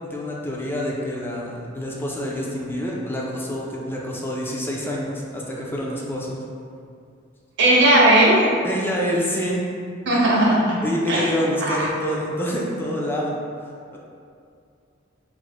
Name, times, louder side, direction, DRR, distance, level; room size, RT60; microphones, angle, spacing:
voice 1, 0.1-6.4 8.6-9.6 10.8-13.4 13.9-14.0, equal, 10° left, -3 dB, 0.4 m, -27 dB
voice 2, 7.6-8.4 10.1-10.8 11.1-11.3 11.6-11.9, right 1 dB, 60° right, -4 dB, 0.7 m, -17 dB
3.6 x 2.0 x 3.3 m, 2.3 s
head